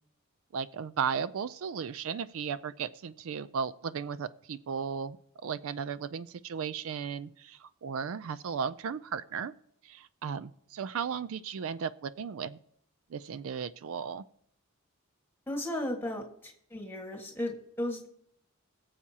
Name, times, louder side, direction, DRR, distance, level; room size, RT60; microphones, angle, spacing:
voice 1, 0.5-5.2 5.4-9.5 9.8-12.6 13.1-14.2, right 6 dB, 65° right, 15 dB, 0.4 m, -35 dB
voice 2, 15.5-18.1, left 1 dB, 10° left, 2 dB, 1.6 m, -35 dB
21.5 x 7.3 x 2.8 m, 0.67 s
head